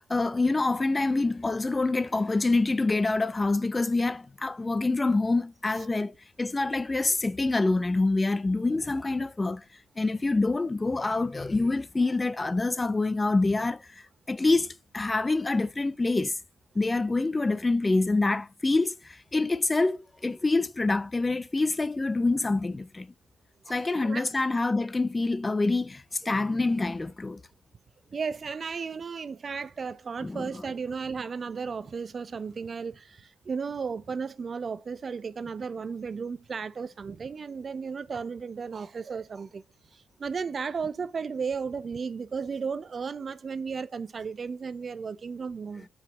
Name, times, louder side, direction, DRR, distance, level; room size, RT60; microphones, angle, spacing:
voice 1, 0.0-9.6 10.0-16.4 16.8-23.1 23.7-27.4 30.2-30.6, left 3 dB, 20° left, 0.4 m, -26 dB
voice 2, 23.7-24.3 28.1-39.6 39.9-45.9, right 5 dB, 40° right, 0.5 m, -34 dB
8.4 x 4.8 x 3.9 m
cardioid pair, 90°, 0 cm